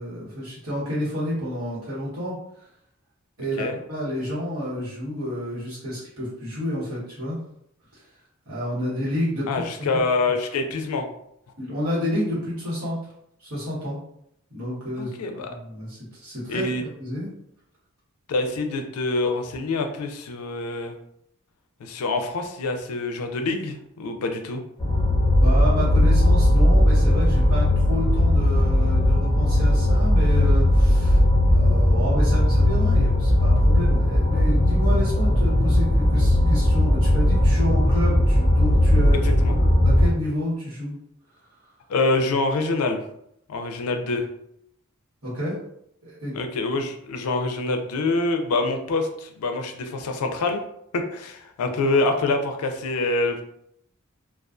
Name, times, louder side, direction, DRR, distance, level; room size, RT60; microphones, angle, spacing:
voice 1, 0.0-2.4 3.4-7.4 7.9-8.0 8.5-9.6 11.6-13.0 13.4-14.0 14.5-17.3 25.4-39.2 39.6-40.9 45.2-45.6 46.0-46.3, equal, 75° right, -7 dB, 1.2 m, -30 dB
voice 2, 9.5-11.1 15.0-15.5 16.5-16.8 18.3-20.9 21.8-24.6 39.2-39.5 41.9-43.0 43.5-44.3 46.3-50.6 50.9-53.4, left 3 dB, 90° left, 5 dB, 0.4 m, -25 dB
sound 1, 24.8-40.1, left 1 dB, 20° left, 0.7 m, -18 dB
2.3 x 2.2 x 2.4 m, 0.74 s
head